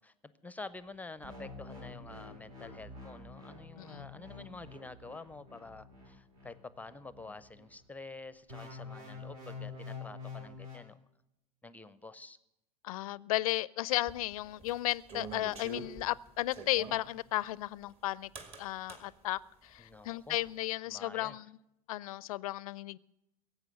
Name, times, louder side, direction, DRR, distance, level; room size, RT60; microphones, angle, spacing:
voice 1, 0.0-11.0 11.6-12.4 19.8-20.4 20.8-21.4, left 3 dB, 10° left, 16 dB, 0.6 m, -48 dB
sound 1, 1.2-7.8 8.5-10.8, left 3 dB, 70° right, 5.0 m, -47 dB
voice 2, 12.8-18.3 18.6-21.5 21.9-23.0, left 16 dB, 65° left, 23 dB, 0.4 m, -34 dB
sound 2, 14.1-17.1 18.4-19.1, right 3 dB, 30° right, 2.0 m, -45 dB
16.5 x 8.1 x 7.9 m, 0.86 s
hypercardioid pair, 85°, 20 cm